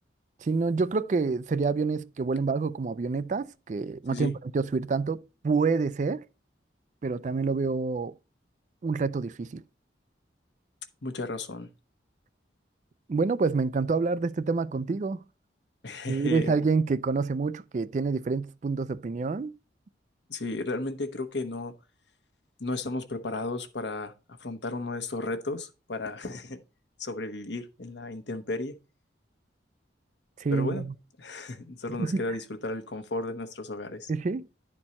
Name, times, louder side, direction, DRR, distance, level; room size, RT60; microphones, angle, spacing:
voice 1, 0.4-6.2 7.0-8.1 8.8-9.6 13.1-15.2 16.1-19.5 30.4-30.9 32.0-32.2 34.1-34.4, right 4 dB, 40° right, 0.3 m, -27 dB
voice 2, 11.0-11.7 15.8-16.5 20.3-21.7 22.6-24.1 24.4-26.6 27.0-28.7 30.5-30.9 31.2-34.1, left 2 dB, 70° left, 1.0 m, -34 dB
11.0 x 4.4 x 4.2 m
head